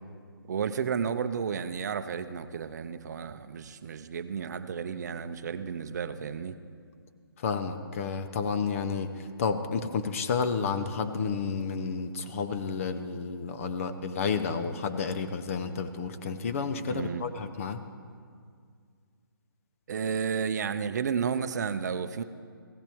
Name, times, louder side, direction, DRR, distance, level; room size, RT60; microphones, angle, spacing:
voice 1, 0.5-6.6 16.9-17.3 19.9-22.2, right 6 dB, 45° right, 11 dB, 0.6 m, -32 dB
voice 2, 7.4-17.8, left 5 dB, 35° left, 9 dB, 0.7 m, -31 dB
16.0 x 15.0 x 3.5 m, 2.1 s
figure-of-eight pair, 145°, 12 cm